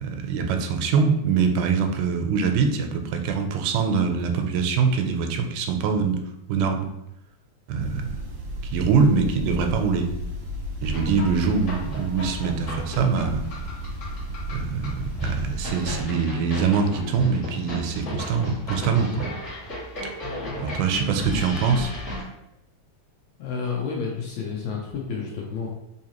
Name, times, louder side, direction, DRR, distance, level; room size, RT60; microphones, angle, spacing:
voice 1, 0.0-6.2 6.5-6.9 7.7-8.2 8.7-10.1 10.8-13.5 14.5-19.3 20.6-21.9, right 5 dB, 90° right, 5 dB, 2.0 m, -23 dB
sound 1, 7.8-16.0, right 1 dB, 75° right, 1.2 m, -34 dB
sound 2, 10.8-22.2, left 1 dB, 40° left, 1.1 m, -34 dB
voice 2, 23.4-25.7, left 5 dB, 75° left, -1 dB, 1.6 m, -30 dB
4.7 x 2.6 x 2.9 m, 0.86 s
omnidirectional pair, 3.5 m